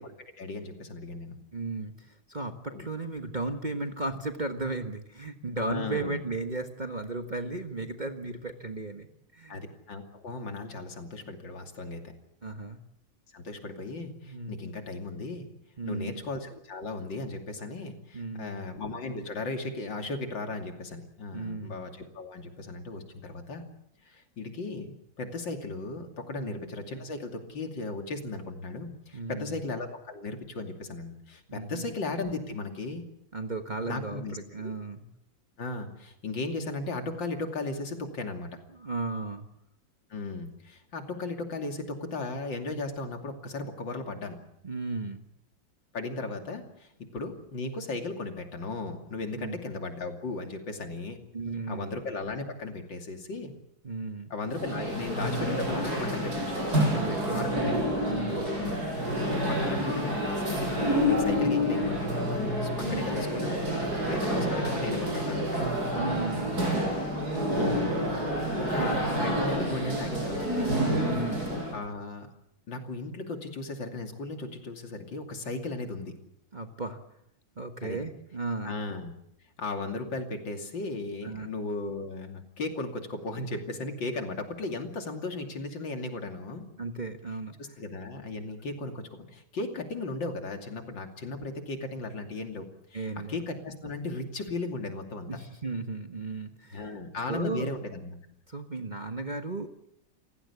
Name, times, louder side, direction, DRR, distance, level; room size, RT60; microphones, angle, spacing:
voice 1, 0.0-1.4 2.7-2.9 5.6-6.2 9.5-12.1 13.3-15.5 15.8-23.7 24.0-33.0 33.9-34.7 35.6-38.5 40.1-44.4 45.9-51.2 51.7-53.6 54.3-56.7 57.3-57.8 58.6-58.8 59.2-65.7 67.5-68.2 68.6-70.8 71.7-72.3 72.7-76.2 77.8-78.0 78.6-79.1 79.6-86.6 87.6-95.3 96.7-98.2, left 3 dB, 70° left, 5 dB, 3.4 m, -36 dB
voice 2, 1.5-9.1 9.3-9.6 12.4-12.8 14.2-14.6 15.8-16.2 18.1-18.7 21.3-21.8 26.4-26.5 29.1-29.6 31.5-31.9 33.3-35.1 38.8-39.5 44.6-45.2 49.4-49.6 51.3-51.9 53.8-54.3 56.8-57.8 58.1-58.5 62.8-63.1 65.9-66.6 68.8-69.1 71.1-71.4 76.5-77.0 77.6-78.8 81.2-81.5 86.8-87.5 92.9-93.4 95.3-96.9 97.3-97.7 98.5-99.9, right 3 dB, 25° right, 5 dB, 1.3 m, -35 dB
sound 1, 54.5-71.8, equal, 50° right, 7.0 m, -28 dB
29.0 x 16.5 x 8.4 m, 0.77 s
omnidirectional pair, 2.1 m